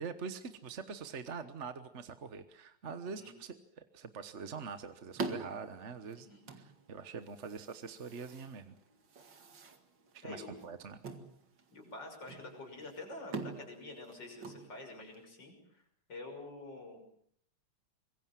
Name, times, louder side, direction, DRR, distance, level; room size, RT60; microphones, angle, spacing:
voice 1, 0.0-6.3 6.5-8.8 10.1-11.0, right 5 dB, 40° right, 10 dB, 1.2 m, -44 dB
sound 1, 4.2-15.2, right 4 dB, 60° right, 2.7 m, -46 dB
voice 2, 10.2-10.7 11.7-15.8 16.1-17.0, left 2 dB, 55° left, 3 dB, 6.8 m, -47 dB
25.5 x 22.0 x 7.5 m, 0.67 s
omnidirectional pair, 2.3 m